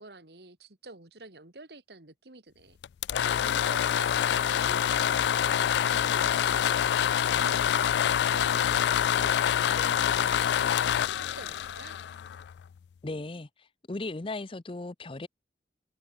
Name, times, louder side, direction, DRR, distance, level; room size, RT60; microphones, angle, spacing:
voice 1, 0.0-2.8 3.4-12.0, right 2 dB, 65° right, 2.3 m, -48 dB
sound 1, 2.8-12.6, left 9 dB, 75° left, 0.3 m, -26 dB
voice 2, 13.0-15.3, left 2 dB, 30° left, 0.6 m, -37 dB
head